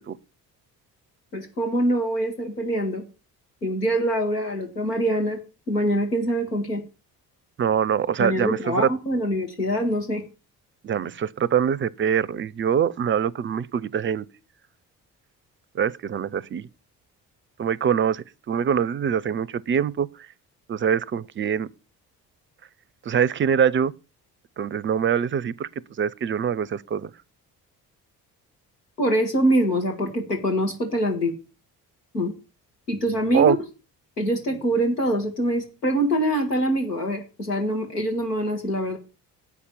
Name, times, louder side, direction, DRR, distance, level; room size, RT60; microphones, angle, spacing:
voice 1, 1.3-3.0 3.6-5.4 5.7-6.8 8.2-10.2 29.0-31.3 32.1-32.3 32.9-33.6 34.2-39.0, right 1 dB, 90° left, 1.1 m, -24 dB
voice 2, 7.6-8.9 10.8-14.2 15.7-16.7 17.6-20.1 20.7-21.7 23.1-23.9 24.6-25.7 26.0-27.1 33.3-33.6, right 8 dB, 25° right, 0.5 m, -24 dB
8.2 x 5.9 x 7.3 m
figure-of-eight pair, 45°, 47 cm